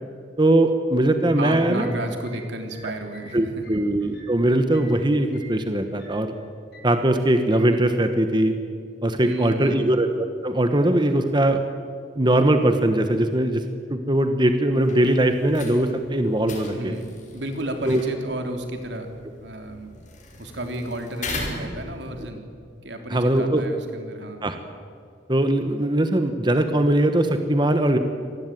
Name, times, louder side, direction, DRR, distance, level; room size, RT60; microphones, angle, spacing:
voice 1, 0.4-1.9 3.3-6.3 6.8-8.5 9.0-11.6 12.1-13.6 13.9-16.9 17.9-18.0 23.1-23.6 24.4-24.6 25.3-28.0, right 1 dB, 25° right, 7 dB, 1.3 m, -20 dB
voice 2, 1.4-3.8 9.2-10.0 16.7-19.9 20.4-22.4 22.8-24.4, right 1 dB, 75° right, 4 dB, 3.6 m, -32 dB
sound 1, 1.8-5.0 5.3-5.6 6.0-6.3 6.7-7.0 7.5-7.8, right 1 dB, 65° left, 7.6 m, -48 dB
sound 2, 14.8-22.3, left 2 dB, 45° left, 5.8 m, -38 dB
26.0 x 19.0 x 9.3 m, 2.4 s
head